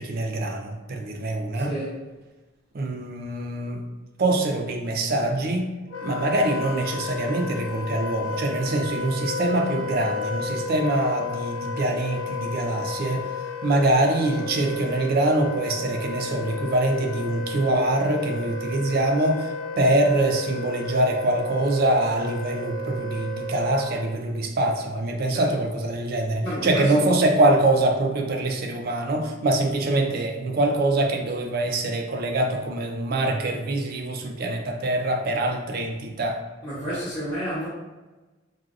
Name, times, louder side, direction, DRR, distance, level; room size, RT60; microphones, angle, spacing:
voice 1, 0.0-1.7 2.7-3.8 4.2-5.7 6.0-13.2 13.6-36.4, right 1 dB, 50° right, 4 dB, 0.4 m, -24 dB
voice 2, 1.6-2.0 25.3-25.5 26.4-27.0 36.6-37.7, right 1 dB, 25° left, -14 dB, 0.9 m, -30 dB
Wind instrument woodwind instrument, 5.9-24.1, left 3 dB, 90° left, 0.5 m, -33 dB
3.2 x 2.5 x 2.4 m, 1.2 s
head